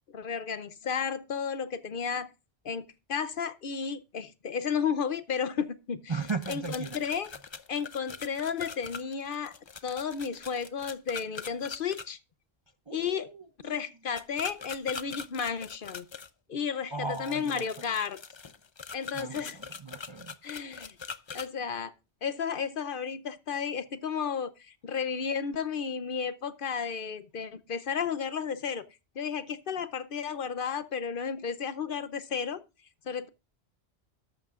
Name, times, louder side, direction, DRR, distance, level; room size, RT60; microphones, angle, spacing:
voice 1, 0.1-2.3 2.6-6.1 6.5-7.3 7.7-9.5 9.8-12.2 12.9-13.3 13.6-16.0 16.5-16.9 17.2-18.2 18.9-19.6 20.4-21.0 21.3-21.9 22.2-28.8 29.2-32.6 33.0-33.3, left 6 dB, 60° left, 0.8 m, -33 dB
voice 2, 6.1-7.0 12.9-13.7 16.9-17.9 19.1-20.3, right 4 dB, 35° right, 0.5 m, -37 dB
sound 1, 6.2-12.0 14.1-16.3 17.1-21.5, left 5 dB, 35° left, 0.5 m, -43 dB
13.5 x 12.0 x 2.4 m
omnidirectional pair, 1.1 m